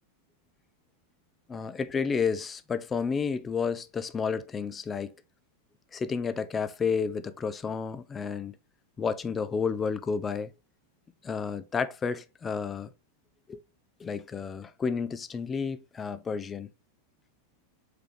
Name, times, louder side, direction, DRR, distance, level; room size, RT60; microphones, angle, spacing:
voice 1, 1.5-5.1 5.9-8.5 9.0-10.5 11.2-12.9 13.5-13.6 14.0-16.7, left 5 dB, 20° left, 0.4 m, -31 dB
4.8 x 3.4 x 3.1 m
figure-of-eight pair, 90°, 0 cm